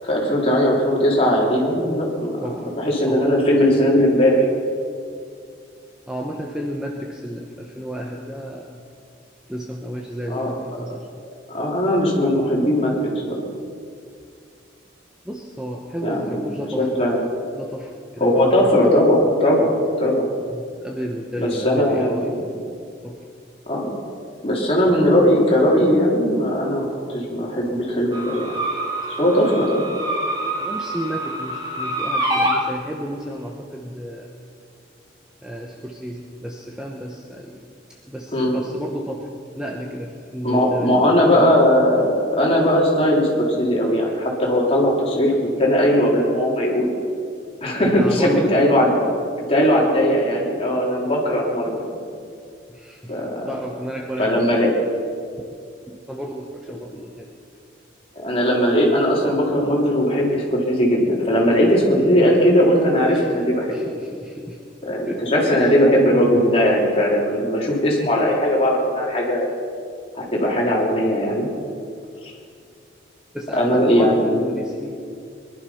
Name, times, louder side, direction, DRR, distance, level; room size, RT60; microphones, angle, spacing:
voice 1, 0.0-2.4 2.8-4.5 10.3-10.5 11.5-13.4 16.0-16.4 16.8-17.2 18.2-20.3 21.4-22.4 23.7-23.8 24.4-28.5 29.2-29.8 38.3-38.6 40.4-46.9 47.6-48.9 49.5-51.9 53.1-53.5 54.2-54.7 58.1-63.7 64.9-69.4 70.1-71.5 72.2-72.3 73.5-74.4, equal, 30° left, -3 dB, 3.4 m, -19 dB
voice 2, 6.1-8.8 9.5-11.2 15.2-17.1 17.5-18.7 20.5-22.3 23.0-23.2 29.5-29.6 30.6-34.3 35.4-37.6 38.0-39.3 39.6-41.7 47.9-48.6 52.7-53.2 53.5-54.6 55.4-55.5 55.9-57.3 63.1-63.3 63.7-64.6 64.9-65.7 73.3-75.0, equal, 5° right, 0 dB, 0.9 m, -32 dB
sound 1, 28.1-32.6, right 1 dB, 20° right, 2.3 m, -26 dB
21.5 x 11.5 x 5.8 m, 2.3 s
head